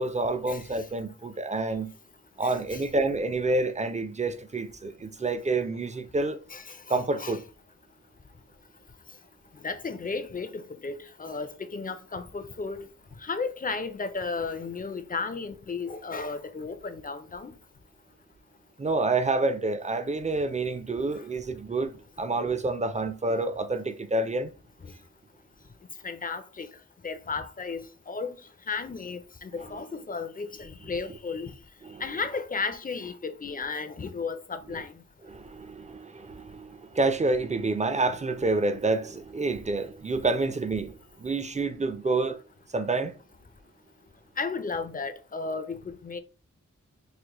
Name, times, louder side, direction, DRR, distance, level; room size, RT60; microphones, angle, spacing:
voice 1, 0.0-1.9 2.4-6.4 6.9-7.4 18.8-24.5 31.8-32.0 35.3-42.4 42.7-43.1, right 3 dB, 25° right, 0.4 m, -28 dB
voice 2, 2.4-2.8 6.5-7.3 9.6-12.9 13.2-17.5 26.0-26.7 27.0-28.4 28.7-31.5 32.0-34.9 44.4-46.2, left 4 dB, 30° left, 0.5 m, -34 dB
4.9 x 2.1 x 2.9 m
wide cardioid pair, 65°, 29 cm